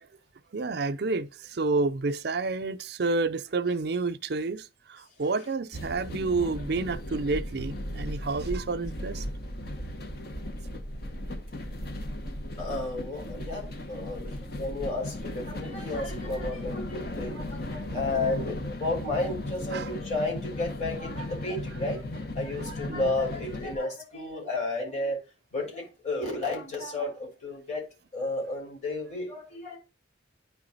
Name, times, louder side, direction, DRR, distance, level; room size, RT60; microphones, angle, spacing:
voice 1, 0.5-9.2 19.7-20.0 22.5-23.1, right 3 dB, 60° right, 0.5 m, -30 dB
sound 1, 5.7-23.8, left 1 dB, 55° left, 1.1 m, -36 dB
voice 2, 12.6-25.2 25.5-27.8 28.1-29.8, left 2 dB, 40° left, 3.9 m, -32 dB
9.6 x 3.6 x 4.0 m
head